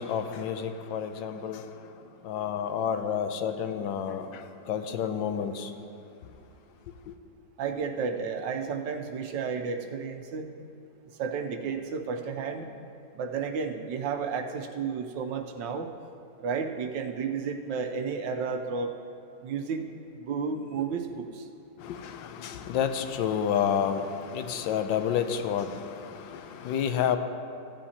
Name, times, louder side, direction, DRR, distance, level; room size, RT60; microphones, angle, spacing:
voice 1, 0.0-1.6 2.2-5.7 7.1-7.2 21.8-27.2, left 8 dB, 85° left, 8 dB, 1.4 m, -30 dB
voice 2, 7.6-10.5 11.2-12.7 13.1-15.9 16.4-18.9 19.4-19.8 20.2-21.5, right 5 dB, 75° right, 5 dB, 1.4 m, -32 dB
15.5 x 10.0 x 2.8 m, 2.6 s
omnidirectional pair, 2.0 m